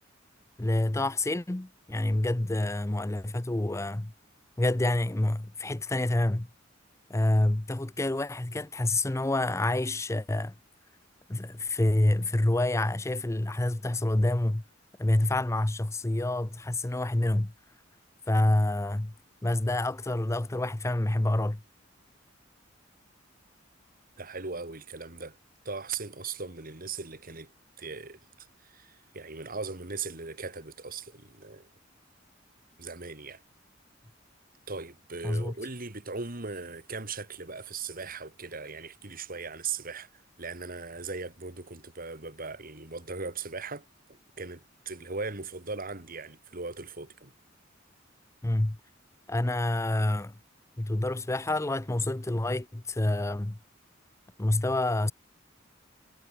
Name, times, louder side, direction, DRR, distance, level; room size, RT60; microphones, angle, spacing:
voice 1, 0.6-4.1 4.6-6.5 7.1-10.6 11.3-14.6 15.0-17.5 18.3-19.1 19.4-21.6 35.2-35.5 48.4-48.8 49.3-50.3 50.8-53.6 54.4-55.1, left 1 dB, 15° left, 0.6 m, -27 dB
voice 2, 24.2-25.4 25.6-27.5 27.8-31.7 32.8-33.4 34.7-47.3, right 4 dB, 50° right, 2.9 m, -39 dB
head